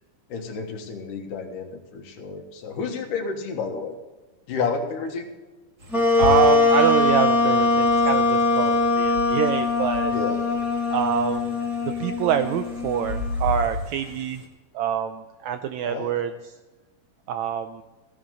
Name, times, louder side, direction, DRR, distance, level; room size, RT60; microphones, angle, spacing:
voice 1, 0.3-4.0 4.5-5.3 10.1-10.4 15.8-16.1, left 5 dB, 75° left, 4 dB, 3.0 m, -30 dB
sound 1, 5.8-14.5, left 1 dB, 35° right, 2.6 m, -35 dB
Wind instrument woodwind instrument, 5.9-13.3, left 3 dB, ahead, 1.7 m, -21 dB
voice 2, 6.2-10.2 10.9-11.5 12.0-14.4 14.7-16.5 17.3-17.8, right 9 dB, 80° right, 9 dB, 1.6 m, -25 dB
15.5 x 11.0 x 4.0 m, 1.2 s
omnidirectional pair, 3.8 m